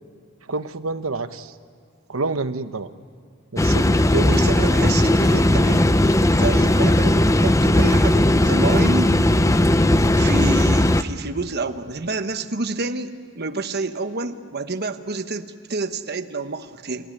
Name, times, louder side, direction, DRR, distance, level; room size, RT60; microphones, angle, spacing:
voice 1, 0.5-1.5 2.1-2.9 3.5-4.6 5.2-5.4, right 3 dB, 85° right, 11 dB, 1.0 m, -28 dB
sound 1, 3.6-11.0, left 1 dB, 15° left, 0.6 m, -17 dB
voice 2, 4.3-9.2 10.2-17.1, right 3 dB, 50° right, 9 dB, 1.1 m, -28 dB
29.0 x 16.0 x 9.9 m, 2.2 s
head